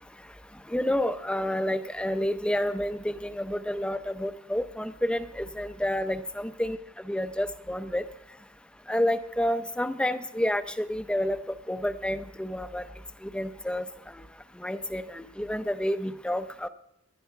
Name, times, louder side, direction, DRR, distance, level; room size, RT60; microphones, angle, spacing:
voice 1, 0.7-6.8 7.1-8.0 8.9-12.9 13.2-13.9 14.6-16.7, left 1 dB, 5° left, 11 dB, 0.6 m, -29 dB
18.5 x 11.5 x 4.6 m, 0.78 s
head